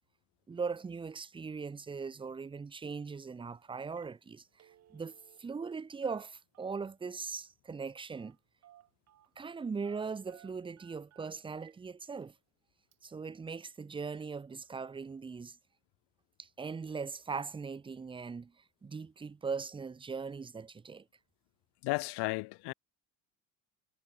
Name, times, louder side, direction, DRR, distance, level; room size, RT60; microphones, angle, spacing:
voice 1, 0.5-8.4 9.4-12.3 13.0-15.6 16.4-18.5 18.8-21.0, right 5 dB, 15° right, 0.7 m, -40 dB
Telephone, 3.4-3.5 3.8-4.2 4.4-5.7 6.0-7.0 8.1-8.4 8.6-9.3 9.8-11.8 12.2-12.3 12.9-13.1, right 12 dB, 40° right, 1.8 m, -61 dB
voice 2, 21.8-22.7, left 24 dB, 90° left, 0.8 m, -33 dB
cardioid pair, 180°, 39 cm